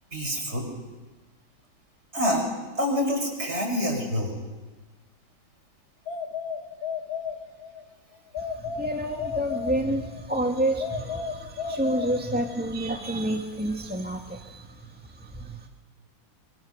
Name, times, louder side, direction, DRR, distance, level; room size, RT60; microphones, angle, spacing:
voice 1, 0.1-0.7 2.1-2.5 2.8-4.4, equal, 30° right, 1 dB, 5.6 m, -26 dB
sound 1, 6.1-7.8 8.3-10.3 10.8-12.7, left 6 dB, 75° left, 2.5 m, -34 dB
voice 2, 8.4-15.7, right 1 dB, 5° right, 2 dB, 1.4 m, -29 dB
25.0 x 25.0 x 6.6 m, 1.3 s
omnidirectional pair, 2.2 m